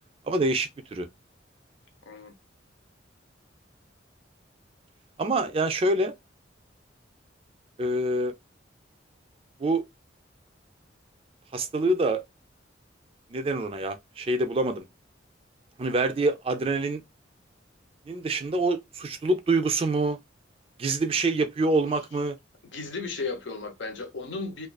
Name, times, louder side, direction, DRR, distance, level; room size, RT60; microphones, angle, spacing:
voice 1, 0.3-1.1 5.2-6.1 7.8-8.3 9.6-9.8 11.5-12.2 13.3-14.8 15.8-17.0 18.1-20.2 20.8-22.4, right 2 dB, 30° right, 0.3 m, -26 dB
voice 2, 22.7-24.7, left 4 dB, 75° left, 0.7 m, -35 dB
2.4 x 2.3 x 2.2 m
head